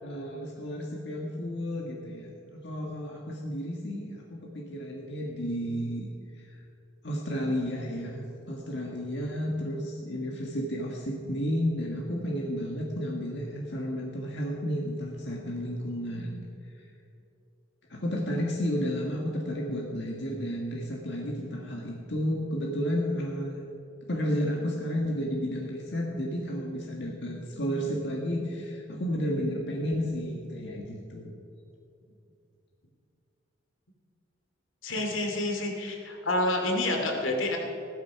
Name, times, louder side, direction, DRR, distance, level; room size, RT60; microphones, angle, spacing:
voice 1, 0.0-6.0 7.0-16.4 17.9-23.6 24.1-31.3, equal, 60° left, -1 dB, 1.7 m, -32 dB
voice 2, 34.8-37.6, left 1 dB, 85° left, 2 dB, 2.6 m, -28 dB
15.0 x 13.0 x 5.8 m, 2.7 s
head